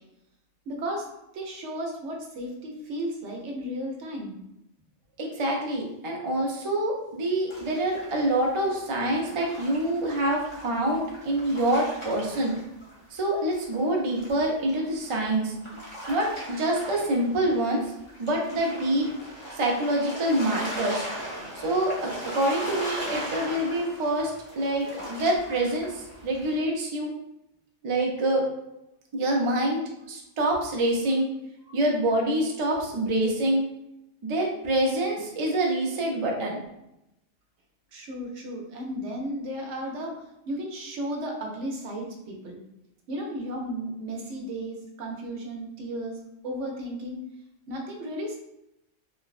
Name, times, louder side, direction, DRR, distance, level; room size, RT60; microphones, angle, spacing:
voice 1, 0.7-1.1 1.3-4.4 37.9-42.6 43.1-47.2 47.7-48.4, equal, 80° right, 1 dB, 0.9 m, -34 dB
voice 2, 5.2-12.5 13.1-15.5 16.1-17.9 18.2-19.1 19.5-21.1 21.6-27.1 27.8-28.5 29.1-29.8 30.1-31.3 31.7-33.6 34.2-36.6, right 1 dB, 50° right, -1 dB, 0.4 m, -26 dB
sound 1, 7.5-13.2 13.5-26.6, equal, 30° left, 0.7 m, -39 dB
3.2 x 2.0 x 2.4 m, 0.86 s
omnidirectional pair, 1.2 m